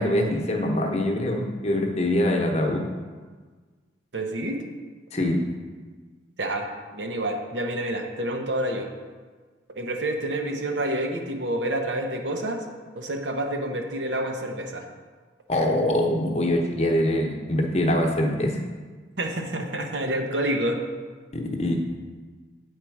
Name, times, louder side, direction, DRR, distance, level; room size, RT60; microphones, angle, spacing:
voice 1, 0.0-2.8 5.1-5.4 15.5-18.6 21.3-21.8, left 1 dB, 35° left, 2 dB, 1.0 m, -24 dB
voice 2, 4.1-4.6 6.4-8.9 9.8-12.6 13.0-14.9 19.2-20.8, right 1 dB, 85° right, 3 dB, 1.0 m, -28 dB
8.6 x 4.7 x 4.7 m, 1.4 s
head